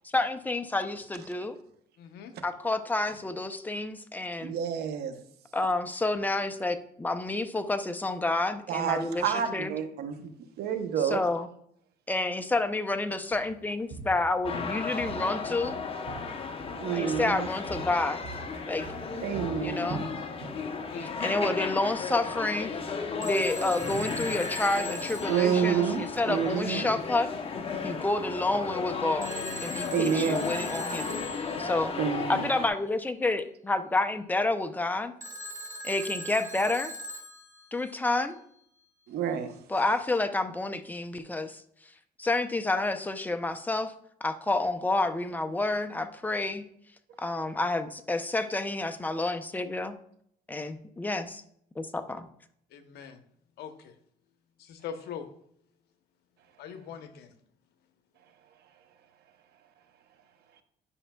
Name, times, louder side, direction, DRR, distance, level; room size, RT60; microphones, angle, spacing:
voice 1, 0.1-1.6 2.4-4.5 5.5-9.7 11.0-11.5 12.1-15.8 16.9-18.2 18.7-18.9 19.6-20.0 21.0-23.0 23.2-27.3 27.8-29.3 29.6-31.9 32.3-35.1 35.8-36.9 37.7-38.4 39.7-41.6 42.2-43.9 44.2-46.6 47.2-50.0 50.5-51.4 51.8-52.3, left 2 dB, 10° left, 8 dB, 0.5 m, -29 dB
voice 2, 2.0-2.3 20.9-21.2 50.5-50.7 52.7-53.2 53.6-53.9 54.6-55.3 56.6-57.3, left 7 dB, 75° left, 8 dB, 0.9 m, -42 dB
voice 3, 4.4-5.1 8.7-10.3 10.6-11.2 16.7-17.5 19.2-20.0 25.3-26.9 29.9-30.5 32.0-32.5 39.1-39.5, right 8 dB, 70° right, 8 dB, 0.8 m, -29 dB
Walk footsteps, 13.3-13.5 13.9-15.3 15.6-16.9 17.1-20.7 21.0-21.2 21.7-21.8, right 4 dB, 55° right, 2.5 m, -43 dB
sound 1, 14.4-32.7, left 5 dB, 35° left, 0.8 m, -34 dB
Telephone, 23.2-26.3 29.2-31.8 35.2-37.9, right 1 dB, 20° right, 1.1 m, -40 dB
10.0 x 5.5 x 2.3 m, 0.69 s
cardioid pair, 110°, 17 cm